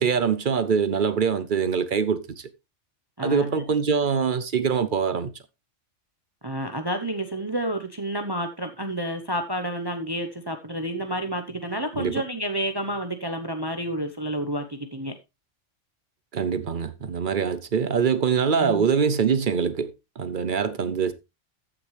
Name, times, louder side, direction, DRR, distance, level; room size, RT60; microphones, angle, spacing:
voice 1, 0.0-2.5 3.2-5.3 12.0-12.2 16.3-21.1, right 6 dB, 50° right, 0.8 m, -24 dB
voice 2, 3.2-3.5 6.4-15.1 18.5-18.9, right 1 dB, 20° right, 0.9 m, -30 dB
14.0 x 6.3 x 3.2 m
omnidirectional pair, 1.3 m